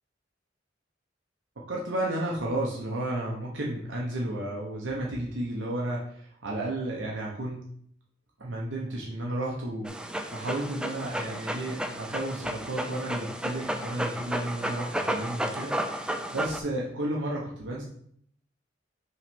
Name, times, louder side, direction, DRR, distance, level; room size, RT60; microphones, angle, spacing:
voice 1, 1.7-7.7 8.4-17.8, right 1 dB, 75° right, -3 dB, 0.9 m, -32 dB
Dog, 9.8-16.6, right 1 dB, 5° right, 0.4 m, -33 dB
5.7 x 3.2 x 5.3 m, 0.66 s
head